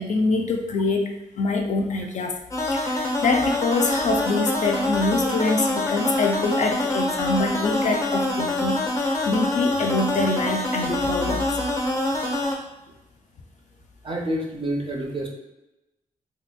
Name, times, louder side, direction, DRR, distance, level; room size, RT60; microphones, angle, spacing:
voice 1, 0.0-2.4 2.6-11.5, left 3 dB, 60° left, 3 dB, 0.5 m, -25 dB
sound 1, 2.5-12.5, left 1 dB, 20° left, 0.7 m, -25 dB
voice 2, 14.0-15.3, right 1 dB, 40° right, 0 dB, 0.7 m, -28 dB
3.3 x 2.8 x 2.2 m, 0.96 s
cardioid pair, 85°, 14 cm